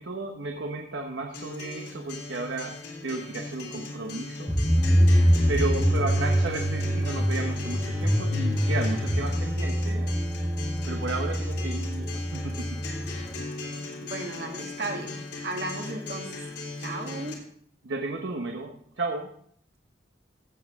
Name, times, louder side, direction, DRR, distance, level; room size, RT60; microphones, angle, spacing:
voice 1, 0.0-2.8 3.0-4.5 5.5-10.1 10.8-12.8 17.8-19.3, right 3 dB, 85° right, 2 dB, 1.1 m, -33 dB
Acoustic guitar, 1.3-17.3, left 3 dB, 70° left, 3.0 m, -38 dB
sound 1, 4.5-13.3, equal, 5° right, 1.3 m, -25 dB
voice 2, 14.0-15.2 15.4-16.4 16.8-17.4, right 2 dB, 60° right, 3 dB, 1.6 m, -34 dB
15.5 x 7.5 x 3.6 m, 0.65 s
head